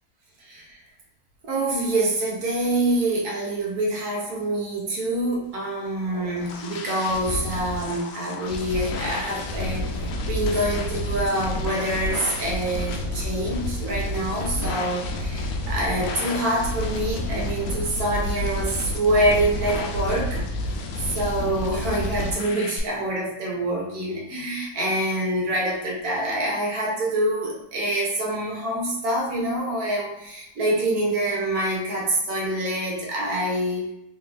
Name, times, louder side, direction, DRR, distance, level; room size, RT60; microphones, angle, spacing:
voice 1, 0.4-0.8 1.4-20.4 21.1-33.9, right 1 dB, 65° right, -2 dB, 1.2 m, -26 dB
sound 1, 5.8-22.8, left 1 dB, 70° left, 0.8 m, -30 dB
3.6 x 3.1 x 2.4 m, 0.84 s
omnidirectional pair, 1.9 m